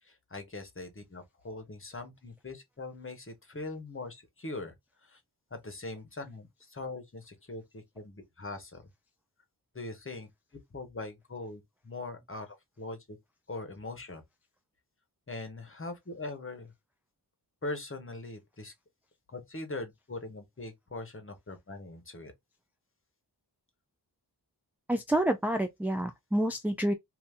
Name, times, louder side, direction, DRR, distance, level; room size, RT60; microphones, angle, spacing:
voice 1, 0.0-4.7 5.0-5.2 5.5-8.8 9.7-10.3 10.7-13.2 13.5-14.2 15.3-16.7 17.6-18.7 19.3-22.3, left 2 dB, 30° left, 1.1 m, -41 dB
voice 2, 24.9-26.9, right 1 dB, 5° right, 0.4 m, -28 dB
2.8 x 2.7 x 3.4 m
wide cardioid pair, 70°, 40 cm